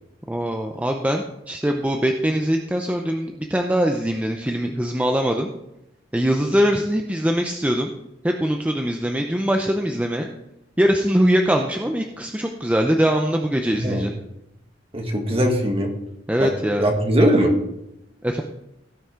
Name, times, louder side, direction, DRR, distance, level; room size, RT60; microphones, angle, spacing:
voice 1, 0.3-5.5 6.1-7.9 8.2-10.3 10.8-14.1 16.3-16.9 18.2-18.4, equal, 10° right, 3 dB, 0.6 m, -22 dB
voice 2, 13.7-14.1 14.9-15.9 16.4-16.5 16.8-17.6, equal, 30° right, 2 dB, 1.9 m, -20 dB
17.0 x 5.9 x 3.8 m, 0.86 s
head